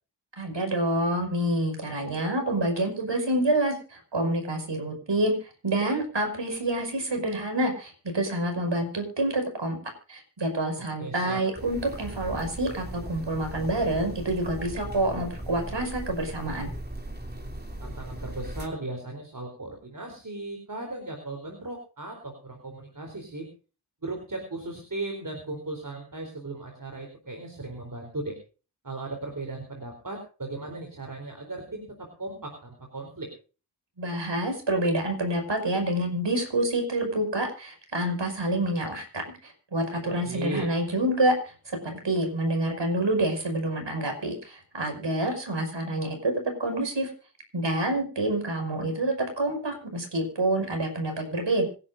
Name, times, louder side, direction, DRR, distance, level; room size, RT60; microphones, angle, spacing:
voice 1, 0.4-9.8 10.1-16.7 34.0-46.3 46.6-47.1 47.5-51.6, right 1 dB, 80° right, 4 dB, 5.7 m, -27 dB
voice 2, 10.8-11.4 17.8-23.5 24.0-28.4 28.8-33.3 40.0-40.7, right 2 dB, 45° right, 3 dB, 4.1 m, -37 dB
sound 1, 11.5-18.7, right 1 dB, 20° right, 3.1 m, -38 dB
26.5 x 11.0 x 2.7 m, 0.36 s
wide cardioid pair, 75°, 43 cm